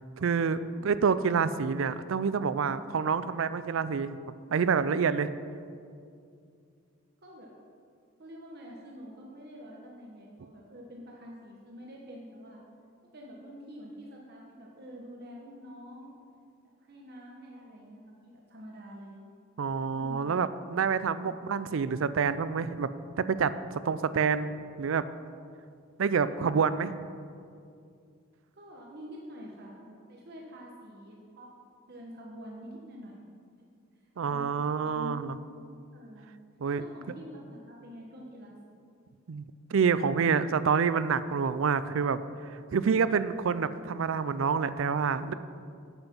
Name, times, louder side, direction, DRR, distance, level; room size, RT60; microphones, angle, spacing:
voice 1, 0.2-4.2 4.5-5.3 19.6-22.9 23.2-23.5 23.8-24.5 24.8-25.0 26.0-27.0 34.2-35.3 36.6-36.8 39.3-42.2 42.5-45.3, right 6 dB, 70° right, 14 dB, 0.4 m, -27 dB
voice 2, 0.7-1.1 7.2-7.5 8.2-12.6 13.1-16.2 16.6-19.2 19.9-20.4 21.2-21.5 28.5-31.5 31.9-33.2 33.9-35.7 35.9-36.3 36.8-38.9, equal, 50° right, -2 dB, 1.1 m, -47 dB
8.9 x 8.0 x 5.4 m, 2.3 s
head